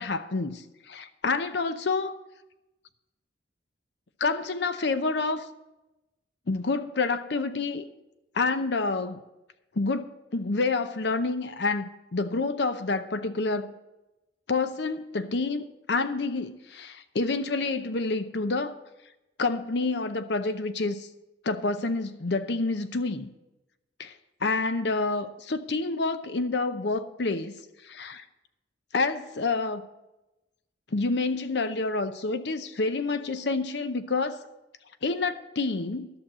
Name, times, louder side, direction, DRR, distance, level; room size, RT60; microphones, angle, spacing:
voice 1, 0.0-2.1 4.2-5.5 6.5-7.8 8.3-9.2 9.8-10.1 10.3-13.7 14.5-18.8 19.4-21.1 21.4-23.3 24.0-24.1 24.4-27.5 27.8-28.2 28.9-29.8 30.9-34.4 35.0-36.1, left 3 dB, 60° left, 0.7 m, -28 dB
11.5 x 6.5 x 7.4 m
head